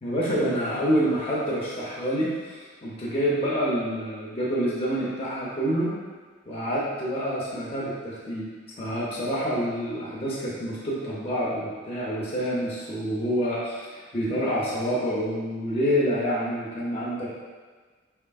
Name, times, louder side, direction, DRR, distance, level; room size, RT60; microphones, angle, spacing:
voice 1, 0.0-5.9 6.5-8.5 8.8-17.3, equal, 30° left, -6 dB, 0.6 m, -27 dB
4.4 x 3.3 x 2.2 m, 1.4 s
head